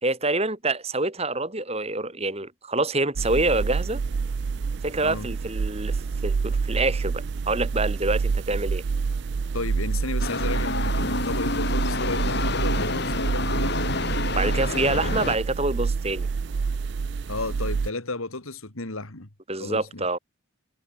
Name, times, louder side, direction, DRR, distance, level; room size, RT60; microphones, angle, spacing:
voice 1, 0.0-4.0 4.8-8.8 14.3-16.3 19.5-20.2, right 2 dB, 30° right, 3.6 m, -26 dB
sound 1, 3.2-17.9, right 5 dB, 55° right, 0.4 m, -28 dB
voice 2, 9.5-13.9 17.3-19.3 19.6-20.0, left 2 dB, 80° left, 2.7 m, -33 dB
sound 2, 10.2-15.4, left 3 dB, 50° left, 2.1 m, -28 dB
head